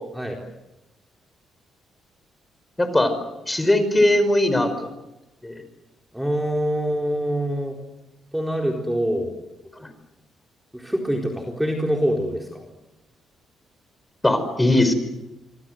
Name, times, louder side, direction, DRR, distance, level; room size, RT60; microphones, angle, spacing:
voice 1, 2.8-3.1 3.5-4.9 5.4-5.5 9.8-9.9 14.2-14.9, left 1 dB, 15° left, 10 dB, 5.5 m, -19 dB
voice 2, 6.1-7.7 8.3-9.3 10.7-12.6, equal, 5° right, 1 dB, 4.2 m, -25 dB
26.5 x 25.5 x 7.9 m, 0.96 s
cardioid pair, 90°, 0 cm